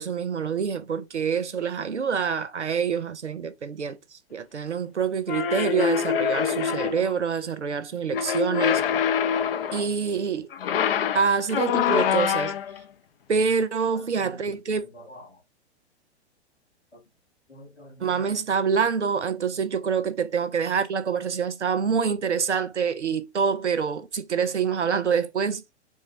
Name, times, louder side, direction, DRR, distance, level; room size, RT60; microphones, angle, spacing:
voice 1, 0.0-4.0 4.3-8.8 9.7-10.5 11.1-12.6 13.3-14.8 18.0-25.6, right 6 dB, 85° right, 0.6 m, -26 dB
sound 1, 5.3-7.1 8.1-9.9 10.5-12.8, left 8 dB, 60° left, 0.4 m, -25 dB
voice 2, 13.9-15.4 16.9-17.0 17.5-18.3, left 1 dB, 85° left, 1.2 m, -47 dB
3.8 x 2.0 x 3.7 m
figure-of-eight pair, 100°, 34 cm